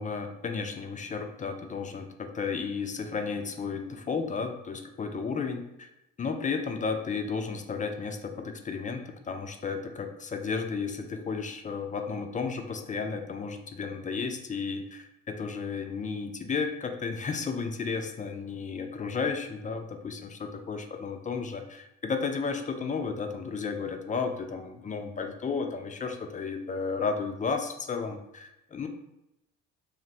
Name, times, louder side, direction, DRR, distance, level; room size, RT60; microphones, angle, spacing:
voice 1, 0.0-5.9 6.2-28.9, left 5 dB, 25° left, 5 dB, 0.3 m, -33 dB
2.5 x 2.1 x 3.9 m, 0.88 s
hypercardioid pair, 60°, 36 cm